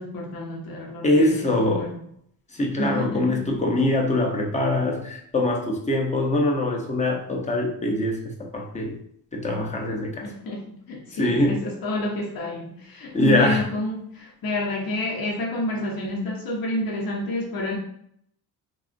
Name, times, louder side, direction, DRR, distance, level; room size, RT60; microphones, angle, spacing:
voice 1, 0.0-2.0 2.8-3.4 10.2-17.8, left 1 dB, 60° left, -1 dB, 0.8 m, -29 dB
voice 2, 1.0-1.9 2.5-8.9 9.3-10.3 11.2-11.6 13.1-13.6, left 1 dB, 20° left, 1 dB, 0.5 m, -23 dB
3.7 x 2.3 x 2.5 m, 0.68 s
cardioid pair, 140°, 40 cm